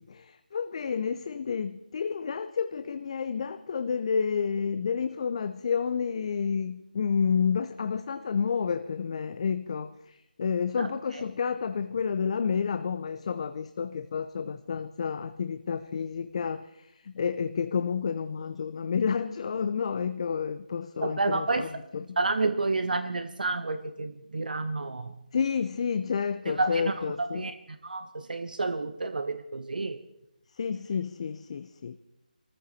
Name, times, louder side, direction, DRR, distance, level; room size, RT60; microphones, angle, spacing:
voice 1, 0.0-22.2 25.3-27.5 30.5-32.0, left 6 dB, 40° left, 11 dB, 0.6 m, -30 dB
voice 2, 21.0-21.7 22.2-25.1 26.5-26.9 27.2-27.5 27.8-30.0, right 3 dB, 70° right, 10 dB, 1.0 m, -30 dB
22.0 x 14.5 x 4.2 m, 0.89 s
figure-of-eight pair, 160°, 5 cm